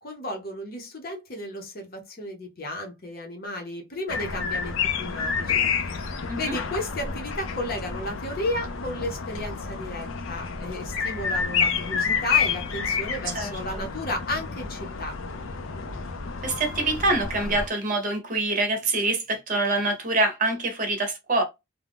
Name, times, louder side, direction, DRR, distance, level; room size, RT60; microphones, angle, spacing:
voice 1, 0.0-15.2, left 1 dB, 45° left, 0.7 m, -33 dB
sound 1, 4.1-17.7, left 6 dB, 70° left, 0.4 m, -29 dB
voice 2, 13.3-13.8 16.4-21.4, right 2 dB, 40° right, 0.7 m, -25 dB
2.4 x 2.1 x 3.4 m
head